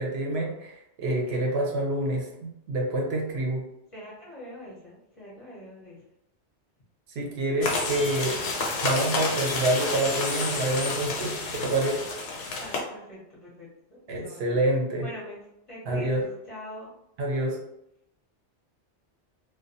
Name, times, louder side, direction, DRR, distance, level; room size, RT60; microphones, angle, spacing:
voice 1, 0.0-3.6 7.1-8.4 8.8-12.0 14.1-15.1 15.9-16.3 17.2-17.6, right 1 dB, 70° right, -1 dB, 0.8 m, -27 dB
voice 2, 3.9-6.0 12.6-14.4 15.0-15.4 15.7-16.9, equal, 35° left, -7 dB, 0.6 m, -43 dB
sound 1, 7.6-12.8, left 3 dB, 85° left, 0.9 m, -30 dB
2.3 x 2.1 x 2.6 m, 0.84 s
omnidirectional pair, 1.2 m